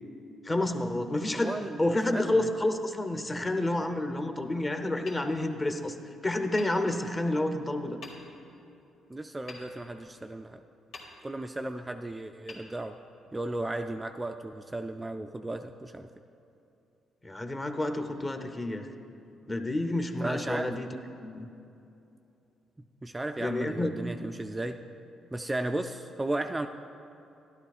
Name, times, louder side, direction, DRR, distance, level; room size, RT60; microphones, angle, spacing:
voice 1, 0.4-6.0 6.2-8.0 17.2-18.9 19.5-20.9 21.2-21.5 23.4-23.9, left 1 dB, 20° left, 6 dB, 0.8 m, -29 dB
voice 2, 1.3-1.8 2.1-2.5 9.1-10.6 11.2-13.0 13.3-16.1 20.2-20.7 23.0-24.8 25.3-26.7, right 2 dB, 15° right, 5 dB, 0.3 m, -35 dB
Hammer, 5.1-6.0 6.5-7.5 8.0-8.6 9.5-10.4 10.9-11.7 12.4-13.4, left 3 dB, 75° left, 2.0 m, -49 dB
13.0 x 11.5 x 2.4 m, 2.8 s
cardioid pair, 90°, 0 cm